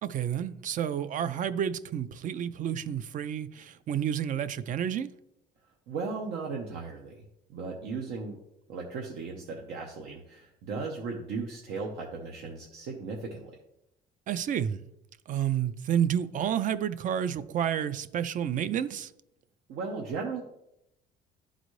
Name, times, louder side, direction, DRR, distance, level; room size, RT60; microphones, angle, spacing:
voice 1, 0.0-5.1 14.3-14.8 15.3-19.1, right 9 dB, 50° right, 0.4 m, -30 dB
voice 2, 5.9-7.2 7.5-8.4 8.7-13.6 19.7-20.4, right 4 dB, 80° right, 0.9 m, -36 dB
11.0 x 4.0 x 3.1 m
cardioid pair, 110°, 17 cm